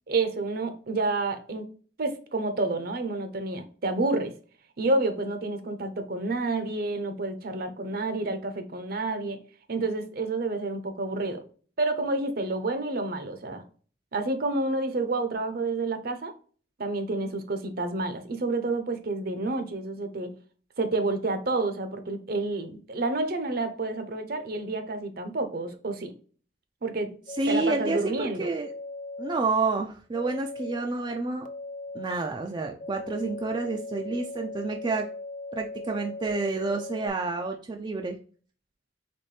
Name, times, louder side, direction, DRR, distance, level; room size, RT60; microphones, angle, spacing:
voice 1, 0.1-1.7 2.0-4.3 4.8-9.4 9.7-11.4 11.8-13.6 14.1-16.3 16.8-20.3 20.8-26.1 26.8-27.1 27.5-28.5, right 2 dB, 55° right, 0.7 m, -29 dB
sound 1, 27.3-28.0 28.6-29.4 30.1-30.8 31.4-32.1 32.8-37.1, left 2 dB, 45° left, 0.4 m, -38 dB
voice 2, 27.4-28.7 29.2-31.5 31.9-35.1 35.5-38.2, right 3 dB, 25° right, 0.4 m, -29 dB
4.2 x 3.5 x 3.3 m
head